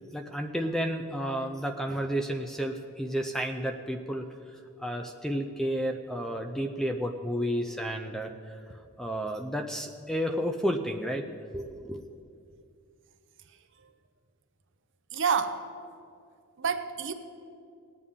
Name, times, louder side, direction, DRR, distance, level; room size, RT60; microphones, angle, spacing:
voice 1, 0.1-4.3 4.8-8.6 9.0-11.2 11.5-12.1, equal, ahead, 5 dB, 0.4 m, -31 dB
voice 2, 15.1-15.6 16.6-17.1, right 6 dB, 55° right, 9 dB, 0.7 m, -28 dB
18.5 x 8.4 x 3.6 m, 2.3 s
head